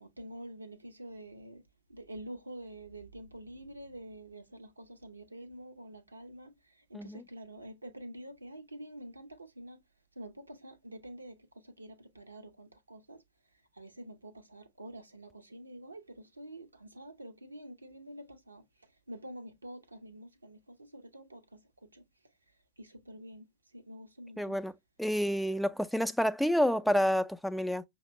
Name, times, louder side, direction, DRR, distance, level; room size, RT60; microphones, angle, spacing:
voice 1, 0.0-1.6 1.9-6.5 6.9-9.8 10.2-11.4 11.6-13.2 13.8-18.6 19.1-21.6 21.9-22.0 22.8-23.5 23.7-24.6, right 1 dB, 80° right, 0.6 m, -47 dB
voice 2, 24.4-24.7 25.0-27.8, equal, ahead, 0.3 m, -29 dB
5.6 x 2.1 x 3.1 m
figure-of-eight pair, 90°, 0 cm